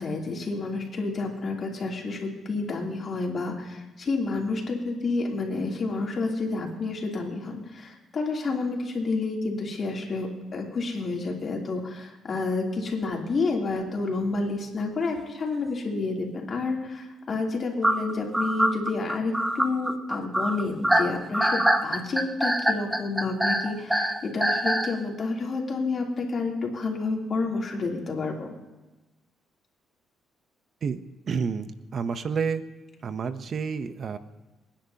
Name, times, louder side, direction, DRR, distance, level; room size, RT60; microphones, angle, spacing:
voice 1, 0.0-28.5, left 3 dB, 45° left, -1 dB, 3.0 m, -29 dB
sound 1, 17.8-24.9, right 1 dB, 10° right, 1.0 m, -24 dB
voice 2, 31.3-32.6 33.0-34.2, right 6 dB, 50° right, 11 dB, 0.7 m, -29 dB
25.5 x 10.0 x 2.8 m, 1.1 s
cardioid pair, 90°, 0 cm